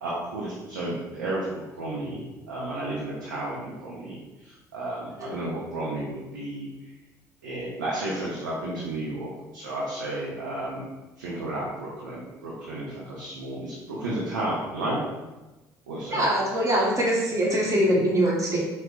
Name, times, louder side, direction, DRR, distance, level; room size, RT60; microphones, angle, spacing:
voice 1, 0.0-6.9 7.4-10.8 11.2-15.0 15.9-16.3, right 1 dB, 85° right, -6 dB, 0.6 m, -32 dB
voice 2, 16.1-18.6, equal, 35° right, -4 dB, 1.2 m, -23 dB
4.4 x 2.1 x 3.9 m, 1.1 s
hypercardioid pair, 55°, 10 cm